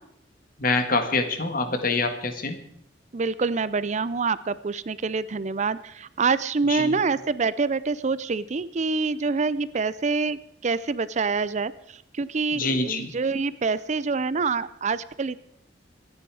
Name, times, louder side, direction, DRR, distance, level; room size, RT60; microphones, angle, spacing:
voice 1, 0.6-2.6 6.7-7.0 12.5-13.1, left 3 dB, 50° left, 8 dB, 1.7 m, -25 dB
voice 2, 3.1-11.7 12.2-15.4, right 4 dB, 40° right, 17 dB, 0.5 m, -26 dB
25.5 x 9.8 x 4.8 m, 0.72 s
head